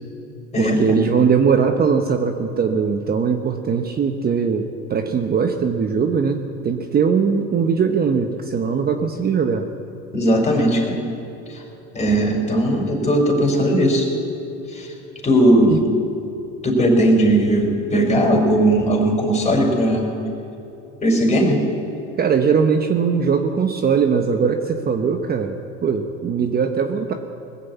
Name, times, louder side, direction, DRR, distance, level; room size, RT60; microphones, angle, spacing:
voice 1, 0.6-9.7 15.7-15.8 22.2-27.1, right 6 dB, 30° right, 6 dB, 1.0 m, -20 dB
voice 2, 10.1-11.0 11.5-11.6 11.9-14.1 14.7-14.9 15.2-15.8 16.6-20.1 21.0-21.6, right 1 dB, 20° left, 1 dB, 4.5 m, -18 dB
20.5 x 7.5 x 8.3 m, 2.9 s
hypercardioid pair, 90°, 32 cm